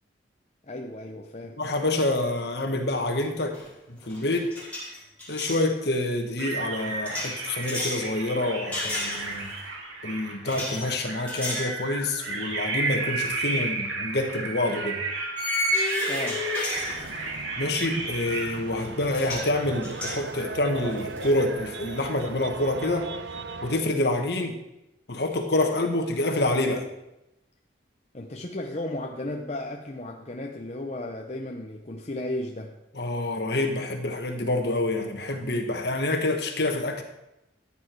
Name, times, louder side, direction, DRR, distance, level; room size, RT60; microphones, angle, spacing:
voice 1, 0.6-1.6 16.1-16.5 28.1-32.8, left 1 dB, 35° left, 1 dB, 0.8 m, -34 dB
voice 2, 1.6-3.6 3.9-4.5 5.3-9.5 10.0-15.0 17.6-23.1 23.6-24.6 25.1-26.8 33.0-37.0, left 2 dB, 60° left, 4 dB, 1.7 m, -27 dB
sound 1, 3.5-3.8 4.0-5.7 7.1-8.1 8.7-9.6 10.5-10.8 11.3-11.7 12.2-12.3 13.9-14.0 15.4-17.4 18.8-18.9 19.1-19.5 19.8-21.3, left 2 dB, 5° left, 5.1 m, -32 dB
sound 2, 6.4-18.6, right 3 dB, 90° right, 2.5 m, -33 dB
sound 3, 16.8-23.8, right 4 dB, 70° right, 0.7 m, -38 dB
14.5 x 8.8 x 4.7 m, 0.90 s
head